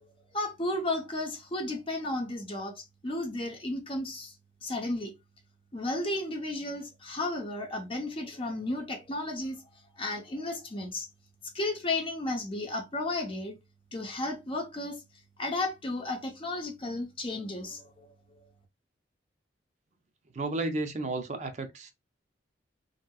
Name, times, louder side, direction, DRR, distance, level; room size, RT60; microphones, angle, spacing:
voice 1, 0.3-4.3 4.6-5.1 5.7-9.6 10.0-11.1 11.5-13.6 13.9-15.0 15.4-18.1, left 2 dB, 30° left, 0.7 m, -33 dB
voice 2, 20.3-21.9, right 2 dB, 35° right, 0.5 m, -32 dB
3.3 x 2.8 x 2.3 m
head